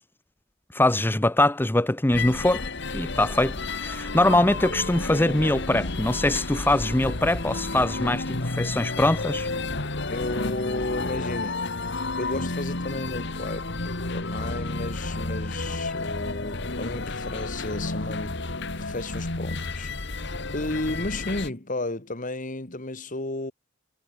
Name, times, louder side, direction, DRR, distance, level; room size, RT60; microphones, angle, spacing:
voice 1, 0.7-2.7 2.9-3.6 3.8-9.5, left 1 dB, 10° left, 0.8 m, -23 dB
sound 1, 2.1-21.5, left 3 dB, 65° left, 2.2 m, -31 dB
voice 2, 5.0-5.3 10.1-11.6 12.1-13.7 14.1-20.3 20.5-23.5, left 2 dB, 40° left, 2.4 m, -33 dB
head